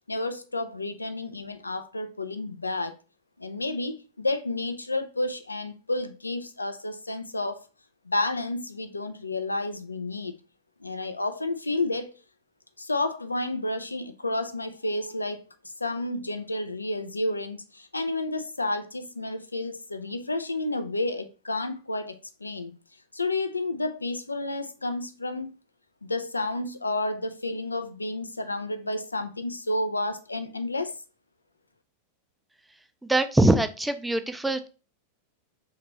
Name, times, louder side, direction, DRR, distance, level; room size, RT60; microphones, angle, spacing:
voice 1, 0.1-2.9 3.4-7.6 8.1-10.4 10.8-12.1 12.8-15.4 15.8-22.7 23.1-25.5 26.0-30.9, left 2 dB, 80° left, 0.4 m, -31 dB
voice 2, 33.0-34.7, right 2 dB, 5° right, 0.3 m, -23 dB
3.4 x 2.8 x 2.9 m
figure-of-eight pair, 90°, 0 cm